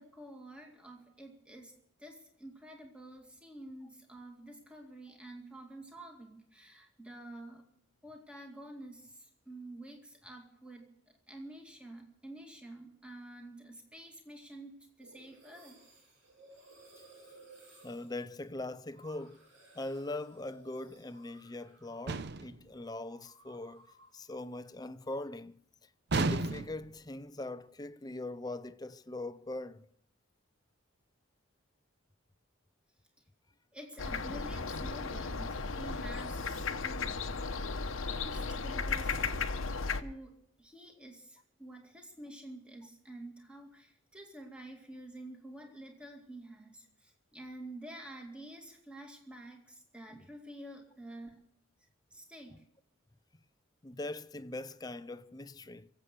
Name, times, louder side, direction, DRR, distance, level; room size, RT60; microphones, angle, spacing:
voice 1, 0.0-7.6 8.0-10.9 11.3-15.8 33.7-37.1 38.1-39.6 40.0-51.4 52.1-52.6, right 1 dB, 5° right, 2.3 m, -49 dB
sound 1, 15.0-22.4 22.7-24.2, right 2 dB, 70° right, 7.8 m, -59 dB
voice 2, 17.8-19.4 19.7-23.9 24.1-29.9 50.1-50.2 52.5-52.6 53.8-55.9, left 2 dB, 20° left, 0.5 m, -41 dB
sound 2, 22.1-22.6 26.1-26.9, right 3 dB, 55° right, 0.6 m, -32 dB
sound 3, 34.0-40.0, left 4 dB, 80° left, 1.0 m, -35 dB
24.5 x 8.2 x 6.7 m
head